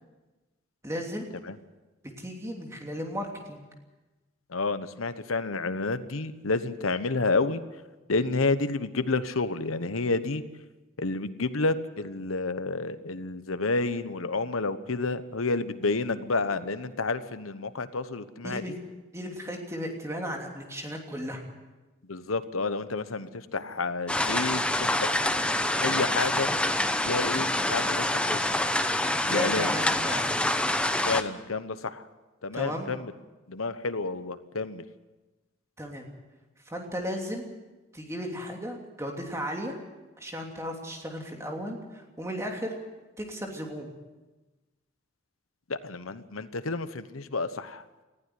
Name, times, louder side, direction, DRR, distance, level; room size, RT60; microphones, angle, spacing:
voice 1, 0.8-1.3 2.2-3.7 18.4-18.7 19.1-21.4 29.3-30.5 32.5-32.9 35.8-36.0 36.6-37.4 37.9-39.7 40.2-42.7 43.2-43.9, equal, 15° right, 1 dB, 3.0 m, -35 dB
voice 2, 4.5-7.6 8.1-10.4 11.0-18.6 22.1-26.5 27.0-28.6 29.3-29.7 31.1-32.1 32.4-33.1 33.5-34.8 45.7-47.8, left 3 dB, 90° left, 12 dB, 1.1 m, -30 dB
sound 1, 24.1-31.2, left 1 dB, 5° left, 0.9 m, -26 dB
20.0 x 15.0 x 9.4 m, 1.2 s
head